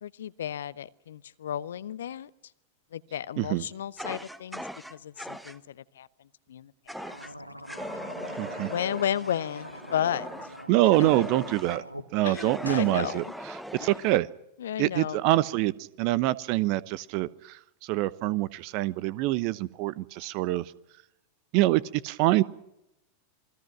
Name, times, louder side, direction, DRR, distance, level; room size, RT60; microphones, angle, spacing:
voice 1, 0.0-2.3 2.9-6.1 6.5-7.1 8.6-10.3 11.0-11.3 12.2-13.3 13.8-13.9 14.6-15.2, left 10 dB, 60° left, 18 dB, 0.8 m, -33 dB
Fire, 4.0-5.6 6.9-7.3 7.7-11.8 12.3-14.2, equal, ahead, 1.2 m, -40 dB
sound 1, 7.0-12.1 12.4-12.9, equal, 90° left, 1.5 m, -42 dB
voice 2, 8.4-8.7 10.7-11.8 12.1-13.2 13.8-14.3 14.8-15.7 16.0-20.6 21.5-22.4, right 17 dB, 45° right, 19 dB, 0.9 m, -25 dB
28.0 x 21.0 x 6.1 m, 0.86 s
figure-of-eight pair, 90°, 0 cm